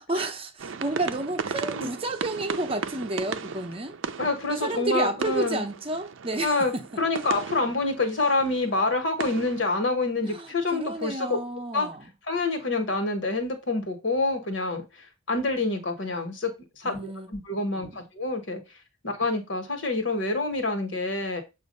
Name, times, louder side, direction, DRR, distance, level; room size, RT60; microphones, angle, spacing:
voice 1, 0.1-4.0 4.5-6.8 10.2-12.1 16.8-17.3 17.8-18.0, right 2 dB, 30° right, 0.7 m, -31 dB
sound 1, 0.6-9.7, right 5 dB, 65° right, 0.5 m, -36 dB
voice 2, 4.2-5.6 6.4-11.4 11.7-11.9 12.3-14.8 15.3-18.6 19.0-21.4, left 3 dB, 65° left, 1.3 m, -27 dB
7.2 x 2.6 x 5.3 m
head